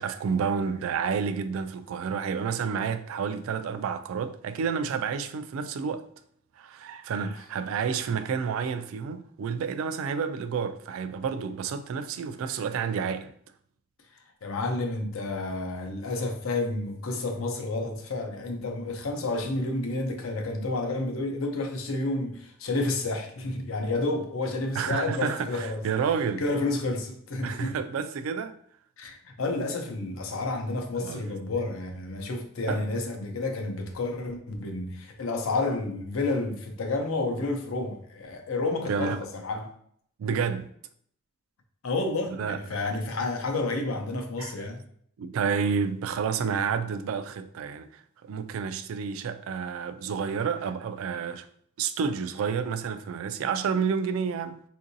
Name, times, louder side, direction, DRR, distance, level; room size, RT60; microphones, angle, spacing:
voice 1, 0.0-6.1 6.6-13.3 24.8-26.4 27.4-28.6 31.0-31.2 32.7-32.9 38.9-39.2 40.2-40.7 42.4-42.6 44.4-44.5 45.2-51.5 51.8-54.6, right 6 dB, 80° right, 0.3 m, -30 dB
voice 2, 14.1-25.9 26.4-27.8 29.0-39.7 41.8-44.8, left 2 dB, 85° left, 0.6 m, -30 dB
3.7 x 2.6 x 2.6 m
head